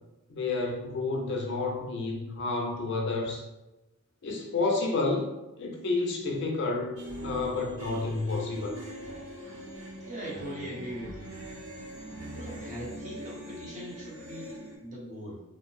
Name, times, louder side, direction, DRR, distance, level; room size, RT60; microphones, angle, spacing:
voice 1, 0.3-3.4 4.2-5.2 5.6-8.8, left 3 dB, 50° left, 1 dB, 0.4 m, -30 dB
sound 1, 7.0-14.8, equal, 65° right, 0.7 m, -42 dB
voice 2, 10.0-11.3 12.3-15.4, right 1 dB, 35° right, -5 dB, 0.7 m, -40 dB
2.6 x 2.0 x 3.0 m, 1.0 s
head